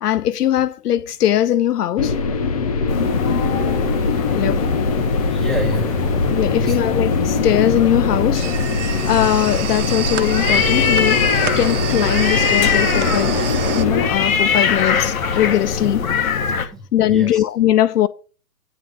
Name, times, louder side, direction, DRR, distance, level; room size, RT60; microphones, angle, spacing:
voice 1, 0.0-2.1 4.3-4.8 6.3-8.5 9.1-11.2 11.6-16.0 16.5-18.1, left 11 dB, 80° left, 0.6 m, -20 dB
sound 1, 2.0-14.1, left 4 dB, 25° left, 0.6 m, -22 dB
sound 2, 2.9-16.7, left 6 dB, 60° left, 1.5 m, -22 dB
voice 2, 5.3-6.8 16.6-17.4, right 1 dB, ahead, 1.8 m, -30 dB
sound 3, 8.3-13.9, right 10 dB, 50° right, 0.9 m, -28 dB
9.9 x 3.7 x 6.5 m
hypercardioid pair, 155°, 46 cm